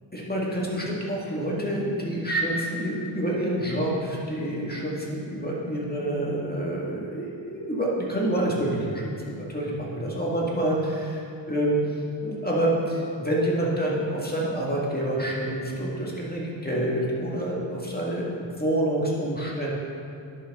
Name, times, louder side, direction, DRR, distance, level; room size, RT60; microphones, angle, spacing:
voice 1, 0.1-11.7 12.2-19.7, right 1 dB, 20° left, -4 dB, 1.9 m, -27 dB
10.5 x 6.7 x 3.7 m, 2.5 s
wide cardioid pair, 50°, 48 cm